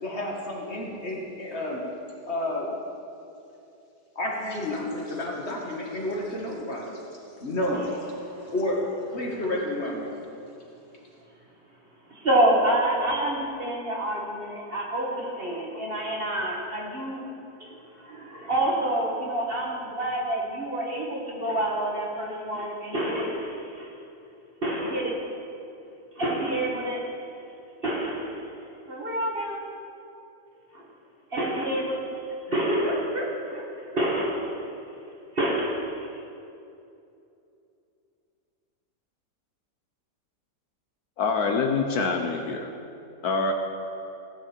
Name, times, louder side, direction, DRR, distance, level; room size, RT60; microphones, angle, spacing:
voice 1, 0.0-1.8 2.3-2.7 4.2-7.0 7.4-8.0 8.5-8.8 9.1-10.2, left 1 dB, 40° left, -2 dB, 1.9 m, -30 dB
voice 2, 12.1-17.2 17.6-23.9 24.6-25.2 26.2-27.1 27.8-28.5 28.9-29.6 30.7-30.8 31.3-34.8 35.3-36.1, right 1 dB, 35° right, -2 dB, 1.7 m, -28 dB
voice 3, 41.2-42.7 43.2-43.5, left 4 dB, 65° left, 4 dB, 1.3 m, -25 dB
16.0 x 9.1 x 4.4 m, 2.7 s
omnidirectional pair, 1.8 m